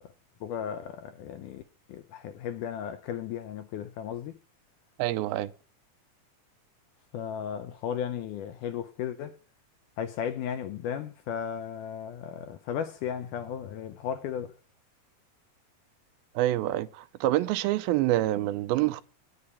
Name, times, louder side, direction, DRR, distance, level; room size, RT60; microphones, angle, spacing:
voice 1, 0.4-1.6 1.9-4.4 7.1-9.3 10.0-14.6, left 8 dB, 80° left, 1.9 m, -35 dB
voice 2, 5.0-5.5 16.4-19.0, right 15 dB, 90° right, 2.5 m, -26 dB
9.6 x 6.7 x 8.4 m
omnidirectional pair, 4.2 m